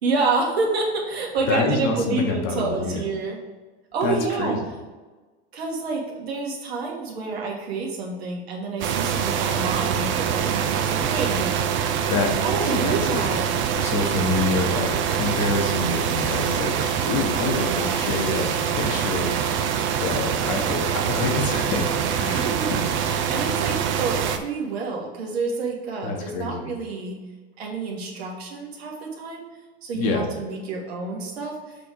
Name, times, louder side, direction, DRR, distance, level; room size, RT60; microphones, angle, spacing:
voice 1, 0.0-3.4 3.9-4.6 5.5-11.6 12.4-13.5 17.4-18.1 22.3-22.7 23.0-27.2 27.6-29.4 29.8-31.8, right 3 dB, 85° right, -1 dB, 1.7 m, -28 dB
voice 2, 1.5-3.0 4.0-4.6 12.1-12.4 12.6-13.2 13.8-19.5 20.0-21.9 22.2-23.0 23.4-23.5 26.0-26.7 29.9-30.3, left 3 dB, 60° left, 3 dB, 1.5 m, -27 dB
sound 1, 8.8-24.4, right 8 dB, 40° right, 0.7 m, -24 dB
6.9 x 3.5 x 4.8 m, 1.3 s
hypercardioid pair, 100°, 31 cm